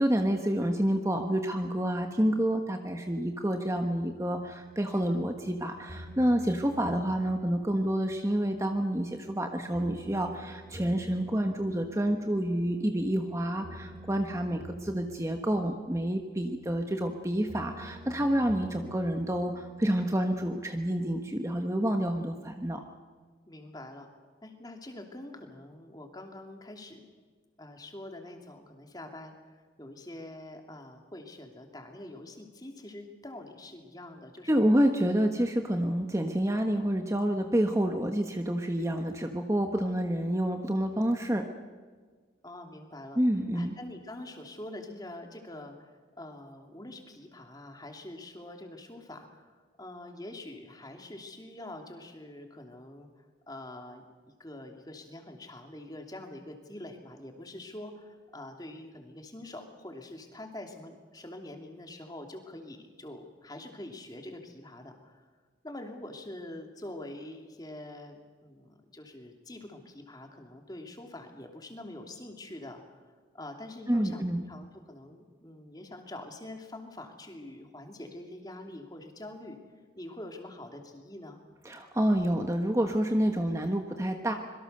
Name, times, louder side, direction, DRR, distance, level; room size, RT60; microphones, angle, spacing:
voice 1, 0.0-22.8 34.5-41.4 43.1-43.8 73.9-74.4 81.6-84.3, right 1 dB, 15° right, 5 dB, 1.2 m, -28 dB
sound 1, 4.0-20.4, equal, 45° right, 7.0 m, -49 dB
voice 2, 23.5-24.1 24.4-27.2 27.6-34.7 42.4-43.2 43.5-53.1 53.5-65.3 65.6-79.6 80.0-81.4, left 1 dB, 20° left, 4 dB, 2.8 m, -45 dB
25.5 x 23.0 x 6.7 m, 1.5 s
head